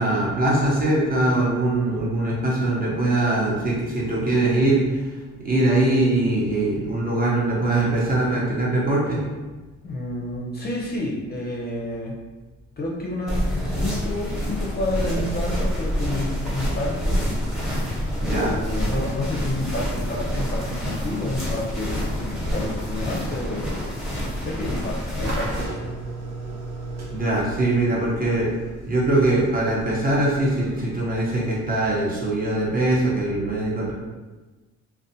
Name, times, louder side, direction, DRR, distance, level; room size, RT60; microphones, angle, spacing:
voice 1, 0.0-5.1 5.4-9.2 18.2-18.6 27.1-28.5 28.8-33.9, right 2 dB, 30° right, -5 dB, 0.8 m, -22 dB
voice 2, 9.8-12.2 12.8-17.2 18.1-25.8, left 1 dB, 35° left, -3 dB, 0.5 m, -30 dB
sound 1, 13.3-25.6, equal, ahead, 0.9 m, -27 dB
sound 2, 25.2-32.3, right 2 dB, 65° right, 0.8 m, -37 dB
2.4 x 2.2 x 2.7 m, 1.2 s
cardioid pair, 90°, 30 cm